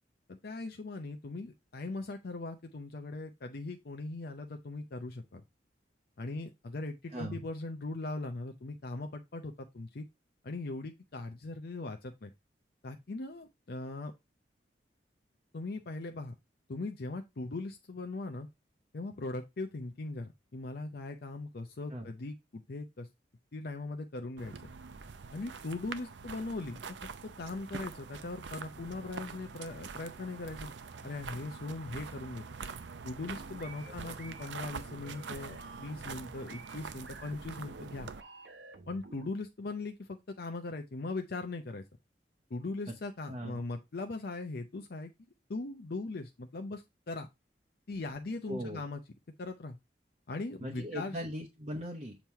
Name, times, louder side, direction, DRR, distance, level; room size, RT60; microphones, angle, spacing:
voice 1, 0.3-5.4 6.2-10.0 10.4-12.3 12.8-14.1 15.5-16.3 16.7-18.5 18.9-23.1 23.5-24.7 25.3-26.8 27.4-30.7 31.0-32.4 33.0-38.1 38.9-41.8 42.5-45.1 45.5-47.3 47.9-49.0 49.4-49.8 50.3-51.2, left 2 dB, 60° left, 0.6 m, -40 dB
sound 1, 24.4-38.2, right 5 dB, 90° right, 0.6 m, -45 dB
sound 2, 33.3-39.3, right 3 dB, 70° right, 1.0 m, -52 dB
voice 2, 43.3-43.6 48.5-48.8 50.6-52.2, equal, 40° right, 0.9 m, -39 dB
7.2 x 3.0 x 4.5 m
head